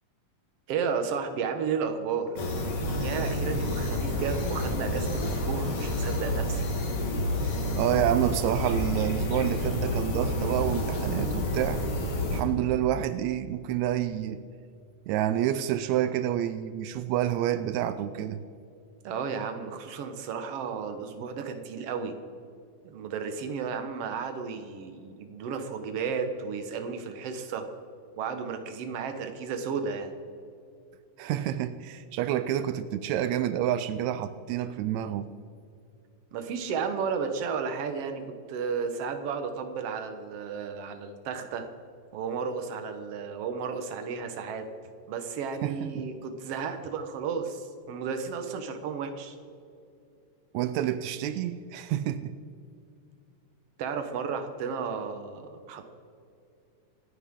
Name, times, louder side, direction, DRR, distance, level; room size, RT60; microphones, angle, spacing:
voice 1, 0.7-2.4 3.0-6.6 19.0-22.1 22.8-27.7 28.2-30.1 36.3-38.2 38.5-41.7 42.1-44.7 45.1-49.4 53.8-55.9, right 6 dB, 60° right, 7 dB, 1.8 m, -33 dB
sound 1, 2.4-12.4, left 1 dB, 50° left, 2.6 m, -29 dB
voice 2, 7.8-11.8 12.3-14.4 15.1-18.4 31.2-35.3 45.6-46.1 50.5-52.3, right 11 dB, 90° right, 12 dB, 1.6 m, -28 dB
27.0 x 10.0 x 3.7 m, 2.5 s
omnidirectional pair, 3.9 m